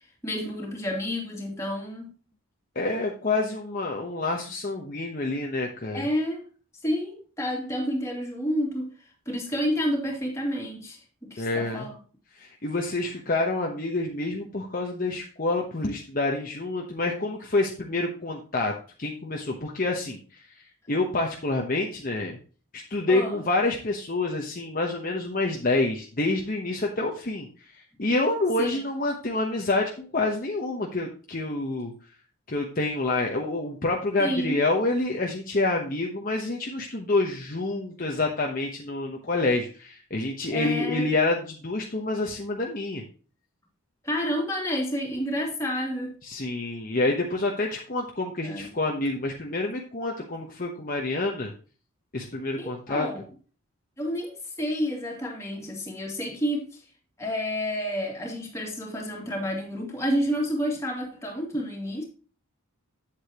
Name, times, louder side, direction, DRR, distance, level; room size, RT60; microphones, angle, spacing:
voice 1, 0.2-2.1 5.9-6.4 6.8-8.9 9.3-12.0 23.1-23.4 28.6-28.8 34.2-34.6 40.5-41.1 44.0-46.1 48.4-48.7 52.6-53.2 54.0-56.8 57.2-62.0, equal, 15° left, 2.4 m, -29 dB
voice 2, 2.7-6.1 11.4-11.9 12.4-18.7 19.0-20.2 20.9-22.4 22.7-27.5 28.0-31.9 32.5-43.0 46.3-51.5 52.1-53.1, left 2 dB, 40° left, 1.0 m, -27 dB
8.7 x 8.1 x 2.9 m
head